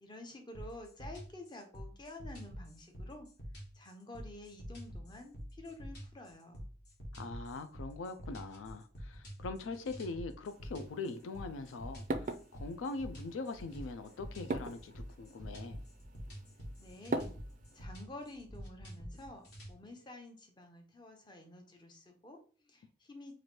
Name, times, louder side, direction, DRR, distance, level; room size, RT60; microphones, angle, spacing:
voice 1, 0.0-3.3 3.7-6.6 16.8-17.3 17.7-23.3, left 2 dB, 25° left, 0.6 m, -50 dB
sound 1, 0.6-19.7, equal, 55° left, 1.3 m, -47 dB
voice 2, 7.1-15.8, left 3 dB, 90° left, 0.4 m, -42 dB
sound 2, 10.5-17.9, right 2 dB, 40° right, 0.3 m, -43 dB
3.1 x 2.5 x 4.2 m
head